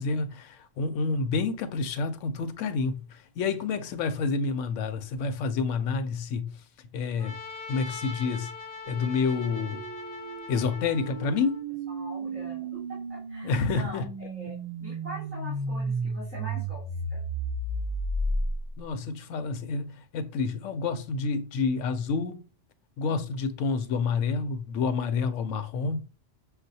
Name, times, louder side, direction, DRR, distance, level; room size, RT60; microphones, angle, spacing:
voice 1, 0.0-6.6 6.9-7.4 7.7-8.5 8.9-9.8 10.5-11.6 13.4-14.1 18.8-22.4 23.0-26.0, left 4 dB, 85° left, 0.9 m, -29 dB
Trumpet, 7.2-11.6, left 4 dB, 55° left, 0.8 m, -42 dB
sound 1, 8.8-18.9, right 2 dB, 50° right, 0.4 m, -34 dB
voice 2, 11.9-16.8 17.1-17.2 23.1-23.2, equal, 10° right, 2.4 m, -43 dB
6.4 x 2.3 x 2.7 m
omnidirectional pair, 1.2 m